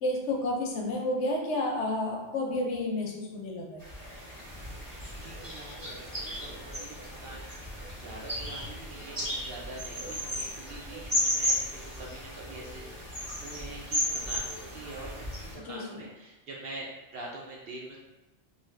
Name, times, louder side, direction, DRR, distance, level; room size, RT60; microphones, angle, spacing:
voice 1, 0.0-3.8 15.6-16.0, left 1 dB, 70° left, 0 dB, 0.8 m, -31 dB
sound 1, 3.8-15.5, equal, 20° right, 0.9 m, -35 dB
voice 2, 5.1-7.5 8.0-12.8 13.1-18.0, right 2 dB, 65° right, -3 dB, 0.7 m, -45 dB
2.6 x 2.3 x 3.1 m, 1.0 s
omnidirectional pair, 1.3 m